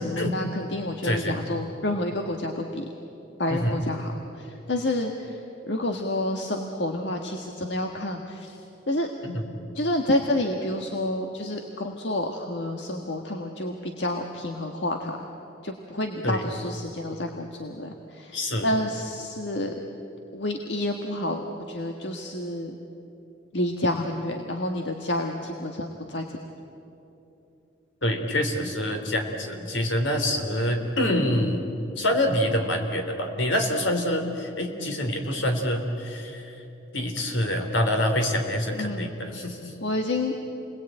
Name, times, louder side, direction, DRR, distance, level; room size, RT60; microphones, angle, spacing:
voice 1, 0.0-2.8 3.4-5.4 5.7-8.5 8.9-9.1 9.7-15.2 15.6-18.3 18.6-19.7 20.3-21.4 21.7-22.7 23.5-26.2 38.7-39.2 39.8-40.3, left 1 dB, 70° left, 3 dB, 1.7 m, -29 dB
voice 2, 1.0-1.4 3.5-3.7 9.2-9.4 16.2-16.4 18.3-18.7 28.0-31.6 32.0-36.5 36.9-39.7, left 1 dB, 90° left, 5 dB, 3.6 m, -26 dB
29.5 x 21.5 x 9.1 m, 2.9 s
head